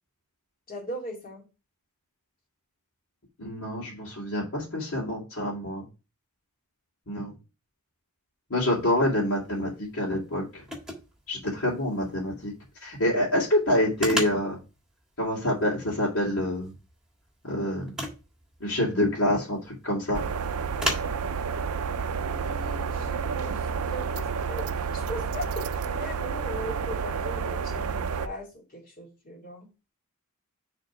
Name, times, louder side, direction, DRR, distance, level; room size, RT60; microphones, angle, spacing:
voice 1, 0.7-1.4 22.3-29.7, equal, 40° left, 2.2 m, -39 dB
voice 2, 3.4-5.8 7.1-7.3 8.5-10.6 11.3-12.5 12.8-14.6 15.2-16.7 17.4-18.0 18.6-20.2, left 1 dB, 65° left, 2.5 m, -27 dB
sound 1, 8.7-25.8, equal, 5° right, 1.7 m, -41 dB
sound 2, 20.1-28.3, right 6 dB, 80° right, 0.5 m, -30 dB
6.6 x 3.6 x 6.0 m
head